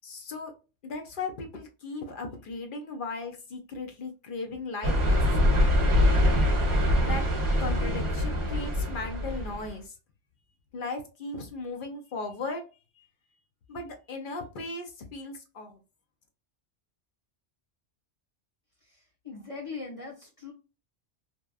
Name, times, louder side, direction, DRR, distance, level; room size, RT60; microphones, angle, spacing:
voice 1, 0.0-0.5 0.8-5.2 7.0-7.2 7.6-9.9 10.7-12.6 13.0-13.1 13.7-15.8, left 3 dB, 55° left, 4 dB, 0.6 m, -37 dB
sound 1, 4.8-9.7, left 1 dB, 35° right, 0.6 m, -24 dB
voice 2, 18.8-20.5, left 4 dB, 30° left, -3 dB, 0.9 m, -41 dB
2.8 x 2.2 x 2.2 m, 0.31 s
omnidirectional pair, 1.2 m